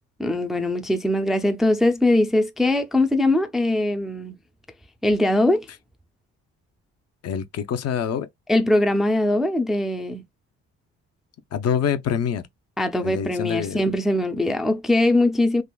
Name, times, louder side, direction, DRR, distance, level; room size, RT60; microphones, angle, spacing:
voice 1, 0.2-4.4 5.0-5.7 8.5-10.2 12.8-15.6, left 1 dB, ahead, 0.4 m, -21 dB
voice 2, 7.2-8.3 11.5-12.5 13.0-13.8, left 8 dB, 55° left, 0.6 m, -25 dB
3.5 x 2.4 x 2.2 m
cardioid pair, 90°, 30 cm